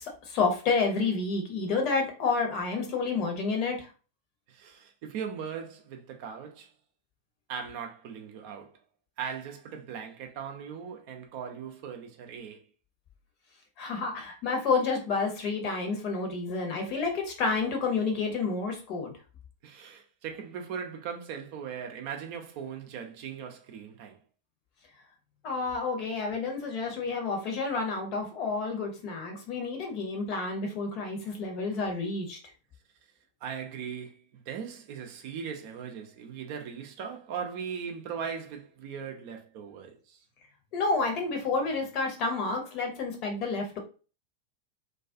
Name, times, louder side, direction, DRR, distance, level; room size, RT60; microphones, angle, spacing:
voice 1, 0.0-3.9 13.8-19.1 25.4-32.4 40.7-43.8, left 4 dB, 40° left, 0.8 m, -29 dB
voice 2, 4.5-6.7 7.5-8.7 9.2-12.6 19.6-24.2 33.4-40.2, right 7 dB, 45° right, 0.5 m, -39 dB
2.3 x 2.3 x 2.4 m
figure-of-eight pair, 90°, 0 cm